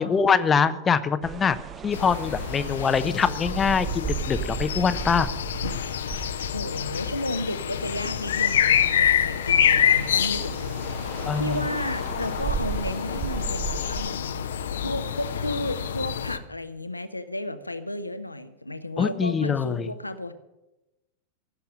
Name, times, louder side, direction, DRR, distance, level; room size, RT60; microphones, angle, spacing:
voice 1, 0.0-1.6 1.8-5.3 11.2-11.6 19.0-19.9, left 6 dB, 20° left, 12 dB, 0.8 m, -23 dB
sound 1, 1.2-7.4 7.9-14.1, right 8 dB, 25° right, 0.6 m, -36 dB
sound 2, 1.9-16.4, left 9 dB, 65° left, 0.8 m, -27 dB
voice 2, 6.5-14.4 14.8-20.3, left 1 dB, 85° left, 11 dB, 1.0 m, -33 dB
16.0 x 7.1 x 9.0 m, 1.0 s
figure-of-eight pair, 90°, 0 cm